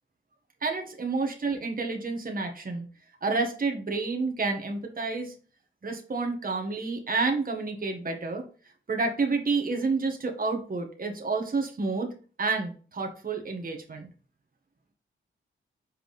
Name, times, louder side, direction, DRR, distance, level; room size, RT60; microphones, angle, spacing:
voice 1, 0.6-2.8 3.2-5.3 5.8-8.4 8.9-12.1 12.4-14.1, right 3 dB, 45° right, 3 dB, 1.6 m, -29 dB
6.2 x 4.7 x 3.3 m, 0.37 s
cardioid pair, 75°, 20 cm